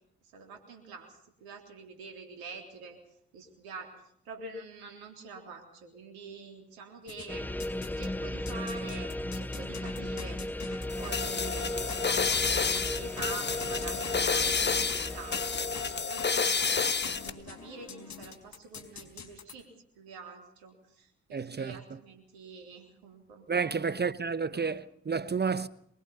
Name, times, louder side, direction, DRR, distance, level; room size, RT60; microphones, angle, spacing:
voice 1, 0.3-3.0 3.3-3.9 4.2-10.4 11.0-15.7 16.0-19.7 20.0-23.9 24.4-24.7, right 4 dB, 75° right, 3.8 m, -46 dB
sound 1, 7.1-8.1 8.5-19.5, left 6 dB, 50° left, 4.5 m, -46 dB
sound 2, 7.3-16.0, left 1 dB, 5° left, 1.0 m, -36 dB
sound 3, 10.9-17.3, left 5 dB, 30° left, 1.3 m, -30 dB
voice 2, 21.3-22.0 23.5-25.7, right 5 dB, 25° right, 1.0 m, -31 dB
23.0 x 23.0 x 5.5 m
hypercardioid pair, 40°, 37 cm